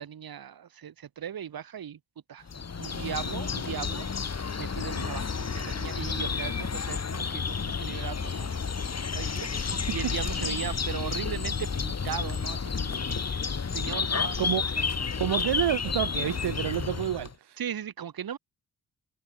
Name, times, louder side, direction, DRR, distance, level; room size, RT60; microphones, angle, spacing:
voice 1, 0.0-2.0 2.3-2.5 2.8-4.1 4.6-8.5 9.1-15.2 17.6-18.4, right 9 dB, 60° right, 2.9 m, -38 dB
sound 1, 2.5-17.3, left 5 dB, 40° left, 4.5 m, -31 dB
voice 2, 15.2-17.6, right 11 dB, 85° right, 2.8 m, -29 dB
cardioid pair, 95°, 39 cm